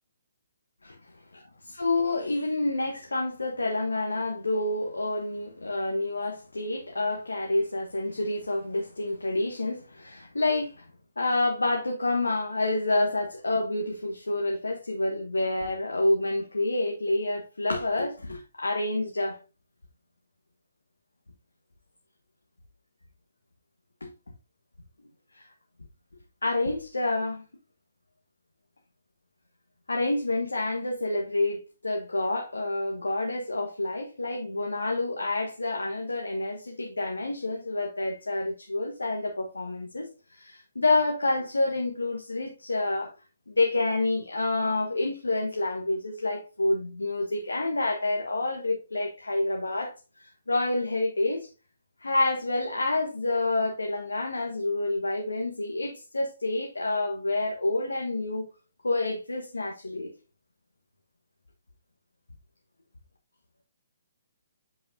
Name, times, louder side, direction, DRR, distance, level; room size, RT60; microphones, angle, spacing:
voice 1, 1.3-10.8 11.2-19.4 24.0-24.1 25.3-25.5 26.4-27.4 29.9-43.1 43.5-49.9 50.2-51.5 52.0-58.5 58.8-60.1, left 2 dB, 75° left, 1.3 m, -28 dB
7.9 x 5.6 x 2.6 m
figure-of-eight pair, 130°, 0 cm